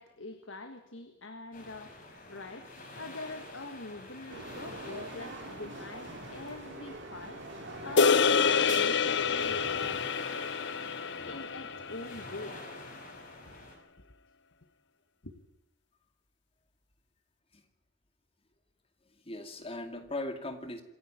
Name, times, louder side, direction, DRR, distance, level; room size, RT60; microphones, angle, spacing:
voice 1, 0.0-10.1 11.2-12.6 13.4-13.5 15.2-15.4, left 2 dB, 80° left, 7 dB, 1.7 m, -44 dB
sound 1, 1.5-13.8, left 2 dB, 45° left, 5.8 m, -47 dB
sound 2, 4.3-9.7, right 2 dB, 65° right, 3.1 m, -43 dB
sound 3, 8.0-12.4, left 5 dB, 60° left, 0.7 m, -27 dB
voice 2, 11.2-11.5 17.5-17.6 19.3-20.8, left 2 dB, 30° left, 7 dB, 2.3 m, -39 dB
27.0 x 11.0 x 8.9 m, 0.90 s
head